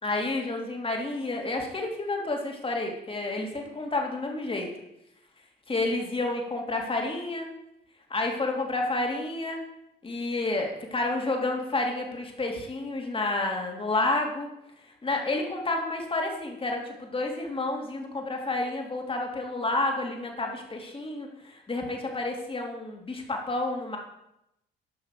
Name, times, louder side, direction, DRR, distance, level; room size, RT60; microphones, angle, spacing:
voice 1, 0.0-4.7 5.7-7.5 8.1-9.6 10.0-14.5 15.0-24.0, left 2 dB, 25° left, 1 dB, 2.9 m, -30 dB
12.0 x 6.0 x 6.8 m, 0.84 s
cardioid pair, 90°, 20 cm